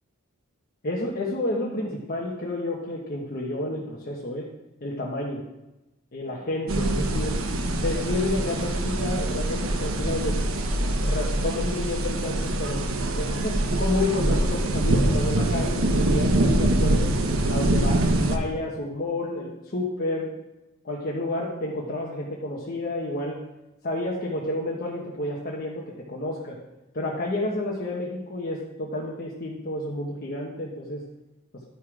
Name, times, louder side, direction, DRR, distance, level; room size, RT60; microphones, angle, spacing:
voice 1, 0.8-4.5 4.8-5.4 6.1-7.4 7.8-10.4 11.0-12.8 13.1-20.3 20.8-23.4 23.8-26.6 26.9-31.0, left 1 dB, 45° left, -3 dB, 1.2 m, -30 dB
sound 1, 6.7-18.4, right 1 dB, 90° right, 1.0 m, -24 dB
11.5 x 5.6 x 4.8 m, 1.0 s
head